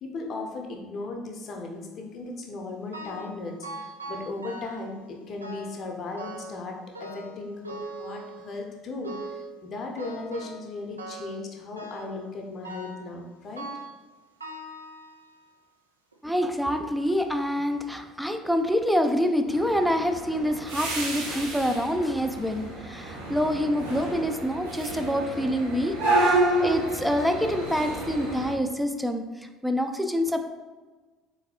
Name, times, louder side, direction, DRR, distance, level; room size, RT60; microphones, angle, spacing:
voice 1, 0.0-13.7, left 3 dB, 40° left, 2 dB, 0.6 m, -37 dB
sound 1, 2.9-3.4 3.6-4.9 5.4-5.8 6.2-6.6 7.0-8.6 9.0-9.5 10.0-10.7 11.0-11.4 11.8-12.2 12.6-13.1 13.6-14.0 14.4-15.5 16.1-16.2 17.0-17.1 17.6-17.7, right 1 dB, 85° right, 0.3 m, -40 dB
voice 2, 16.2-29.2 29.6-30.5, equal, ahead, 6 dB, 0.3 m, -26 dB
sound 2, 19.5-28.5, right 2 dB, 70° right, 0.7 m, -29 dB
3.9 x 3.1 x 2.9 m, 1.3 s
figure-of-eight pair, 60°, 0 cm